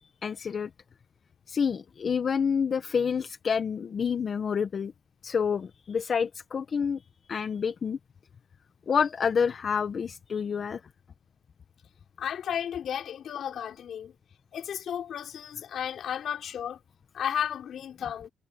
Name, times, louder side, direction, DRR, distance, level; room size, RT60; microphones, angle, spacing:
voice 1, 0.0-0.7 1.5-4.9 5.2-7.0 7.3-8.0 8.9-10.8, left 6 dB, 45° left, 1.4 m, -28 dB
voice 2, 12.2-14.1 14.5-16.8 17.1-18.3, left 9 dB, 65° left, 5.1 m, -33 dB
cardioid pair, 90°, 0 cm